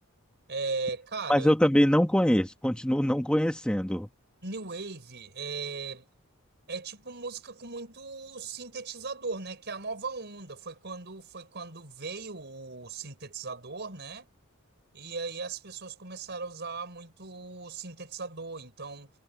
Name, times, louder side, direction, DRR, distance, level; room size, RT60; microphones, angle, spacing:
voice 1, 0.5-1.5 4.4-6.1 6.7-14.3 14.9-19.1, right 4 dB, 55° right, 5.0 m, -38 dB
voice 2, 1.3-4.1, equal, 5° left, 1.2 m, -23 dB
head